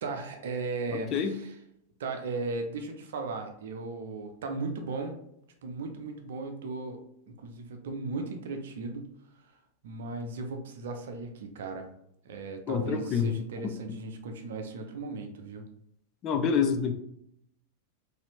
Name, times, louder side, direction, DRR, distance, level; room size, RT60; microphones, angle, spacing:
voice 1, 0.0-1.5 2.0-5.2 5.6-7.0 7.3-9.1 9.8-11.9 12.2-15.6, right 3 dB, 60° right, 5 dB, 0.6 m, -36 dB
voice 2, 0.9-1.3 12.7-13.3 13.6-13.7 16.2-16.9, left 6 dB, 35° left, 7 dB, 0.4 m, -27 dB
4.1 x 2.7 x 2.9 m, 0.73 s
figure-of-eight pair, 90°, 0 cm